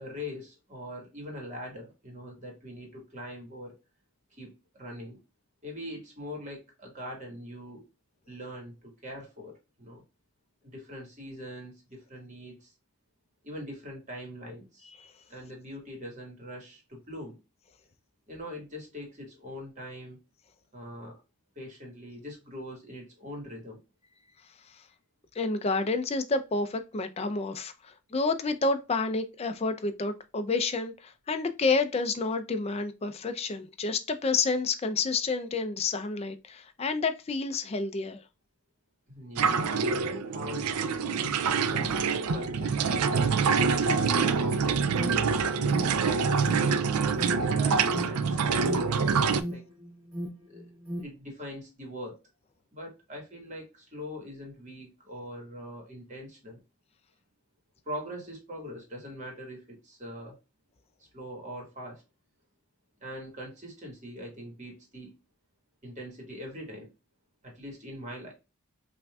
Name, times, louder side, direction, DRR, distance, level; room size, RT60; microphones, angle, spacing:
voice 1, 0.0-3.8 4.4-5.2 5.6-7.8 8.3-10.0 10.6-12.7 13.4-14.9 15.3-17.3 18.3-20.2 20.7-21.2 21.5-23.8 39.1-40.7 41.2-42.0 42.3-45.4 46.0-46.3 46.5-49.6 50.5-52.1 52.7-56.6 57.8-60.4 61.0-62.0 63.0-65.1 65.8-66.9 67.4-68.3, equal, 35° right, 1.6 m, -42 dB
voice 2, 25.3-38.2, left 3 dB, 25° left, 0.4 m, -29 dB
sound 1, 39.4-49.4, right 5 dB, 85° right, 0.4 m, -26 dB
Alarm, 44.3-51.0, equal, 10° right, 1.9 m, -39 dB
5.6 x 2.6 x 2.3 m
head